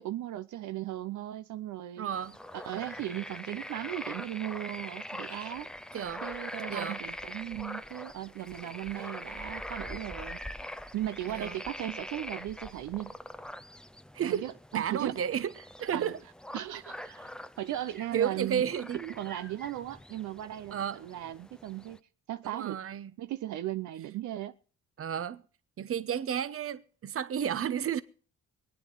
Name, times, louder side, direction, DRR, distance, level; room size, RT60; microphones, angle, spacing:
voice 1, 0.0-2.1 2.5-5.7 6.2-10.4 10.9-13.1 14.2-15.1 15.9-16.1 16.5-18.6 19.1-22.0 22.3-22.8 23.2-24.5, right 13 dB, 75° right, 0.7 m, -37 dB
voice 2, 2.0-2.4 5.9-6.3 6.7-7.0 11.3-11.6 14.1-14.4 14.7-15.5 15.8-16.2 18.1-19.1 20.7-21.0 22.4-23.1 25.0-25.4 25.8-28.0, right 9 dB, 50° right, 0.9 m, -32 dB
sound 1, 2.1-22.0, left 1 dB, 5° left, 0.5 m, -43 dB
24.0 x 9.3 x 3.9 m
cardioid pair, 90°, 30 cm